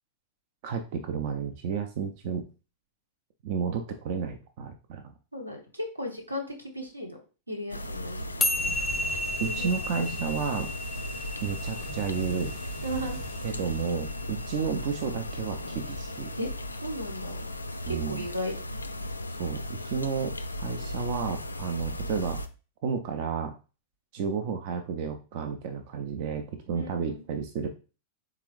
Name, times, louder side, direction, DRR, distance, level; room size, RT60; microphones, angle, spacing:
voice 1, 0.6-2.5 3.4-5.1 9.4-10.7 11.4-12.5 13.4-16.3 17.9-18.3 19.4-20.3 20.6-22.4 22.8-23.5 24.1-27.7, right 6 dB, 50° right, 5 dB, 0.5 m, -32 dB
voice 2, 5.3-7.2 7.5-8.5 9.4-9.7 12.8-13.2 16.4-17.5 17.9-18.5 26.7-27.2, equal, 85° right, 2 dB, 1.0 m, -36 dB
sound 1, 7.7-22.5, left 1 dB, 80° left, 0.3 m, -36 dB
sound 2, 8.4-15.0, left 1 dB, 15° left, 0.5 m, -33 dB
sound 3, 8.5-14.4, left 1 dB, 5° right, 0.9 m, -46 dB
3.7 x 3.7 x 3.1 m, 0.34 s
figure-of-eight pair, 90°, 0 cm